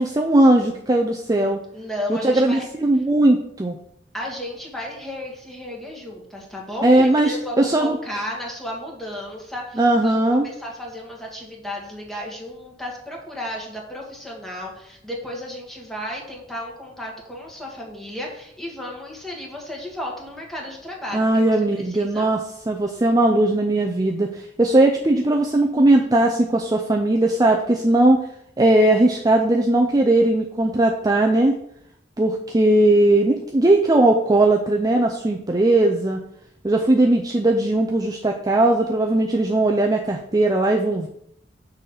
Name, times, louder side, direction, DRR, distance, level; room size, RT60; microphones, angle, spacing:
voice 1, 0.0-1.6 2.1-3.8 6.8-8.0 9.8-10.5 21.1-22.4 22.7-28.2 28.6-31.5 32.2-36.2 36.6-41.1, right 1 dB, 20° right, 2 dB, 0.5 m, -18 dB
voice 2, 1.7-2.7 4.1-10.1 10.4-22.3, left 1 dB, ahead, -2 dB, 1.6 m, -33 dB
6.4 x 4.2 x 6.5 m, 0.72 s
head